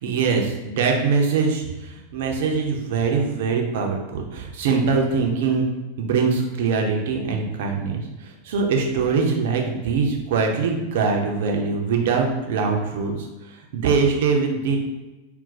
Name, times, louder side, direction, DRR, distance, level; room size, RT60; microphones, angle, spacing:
voice 1, 0.0-5.7 6.0-13.2 13.4-14.8, right 5 dB, 55° right, 2 dB, 0.5 m, -23 dB
2.4 x 2.2 x 4.0 m, 1.1 s
figure-of-eight pair, 90°, 0 cm